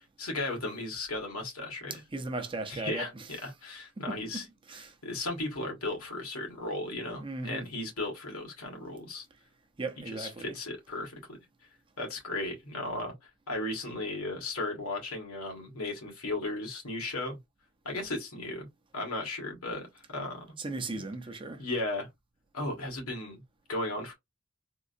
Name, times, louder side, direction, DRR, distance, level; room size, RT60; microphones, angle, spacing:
voice 1, 0.2-2.0 2.7-3.1 3.4-4.4 5.0-9.2 10.1-11.4 12.0-13.1 13.5-17.4 17.8-18.7 18.9-20.6 21.6-22.1 22.5-23.4 23.7-24.1, left 2 dB, 90° left, 1.6 m, -35 dB
voice 2, 2.1-3.3 4.0-4.4 4.7-4.9 7.2-7.7 9.8-10.6 20.6-21.7, right 2 dB, 25° right, 0.5 m, -37 dB
3.7 x 2.5 x 2.6 m
head